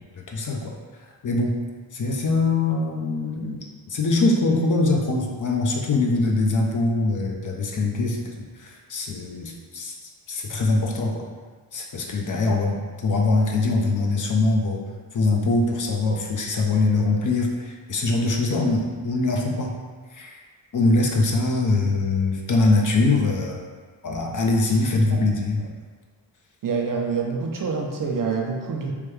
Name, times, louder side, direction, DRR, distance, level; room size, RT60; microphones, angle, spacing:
voice 1, 0.2-0.7 1.2-1.6 1.9-8.3 8.6-9.9 10.3-11.2 11.7-14.8 15.1-19.7 20.1-20.3 20.7-23.7 24.0-25.7, left 2 dB, 45° left, 0 dB, 0.6 m, -23 dB
voice 2, 26.6-28.9, right 5 dB, 50° right, 1 dB, 0.5 m, -26 dB
3.4 x 2.2 x 3.1 m, 1.5 s
cardioid pair, 60°, 44 cm